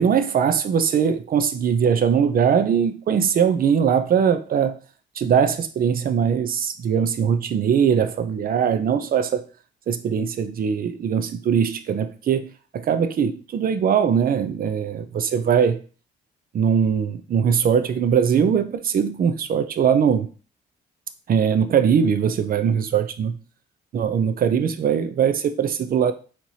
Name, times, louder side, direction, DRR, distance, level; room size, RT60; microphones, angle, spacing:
voice 1, 0.0-4.8 5.2-9.4 9.9-15.8 16.5-20.3 21.3-23.4 23.9-26.1, right 7 dB, 45° right, 0.5 m, -21 dB
4.5 x 2.9 x 2.7 m
cardioid pair, 90°, 20 cm